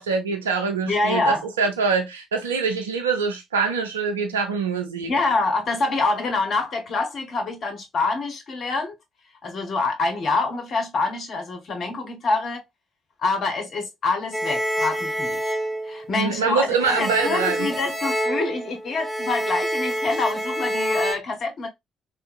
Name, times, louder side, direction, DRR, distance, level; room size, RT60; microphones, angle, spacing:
voice 1, 0.0-5.1 16.1-17.7, right 5 dB, 80° right, 0.5 m, -24 dB
voice 2, 0.8-1.5 5.1-9.0 9.4-12.6 13.2-15.4 15.8-21.7, left 3 dB, 50° left, 0.9 m, -26 dB
sound 1, 14.3-16.5 16.8-21.2, right 1 dB, 5° left, 0.8 m, -27 dB
3.5 x 2.5 x 2.3 m
figure-of-eight pair, 45°, 0 cm